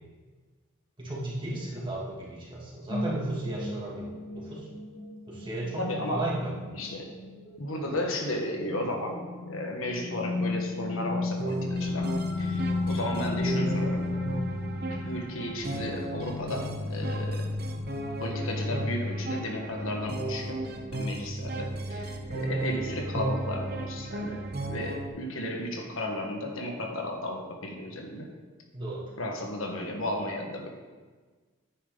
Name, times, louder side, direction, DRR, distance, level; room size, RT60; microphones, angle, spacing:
voice 1, 1.0-4.7 5.3-5.8 6.1-6.5 28.7-29.0, right 1 dB, 25° right, -6 dB, 2.6 m, -34 dB
sound 1, 2.9-19.1, left 3 dB, 40° left, 3.2 m, -35 dB
voice 2, 5.8-7.1 7.6-9.2 9.5-14.1 14.9-17.5 18.2-20.6 20.9-28.3 29.2-30.7, left 1 dB, 80° left, 2 dB, 1.5 m, -34 dB
sound 2, 11.4-25.1, right 1 dB, 45° right, 0.9 m, -34 dB
10.5 x 9.3 x 4.0 m, 1.4 s
head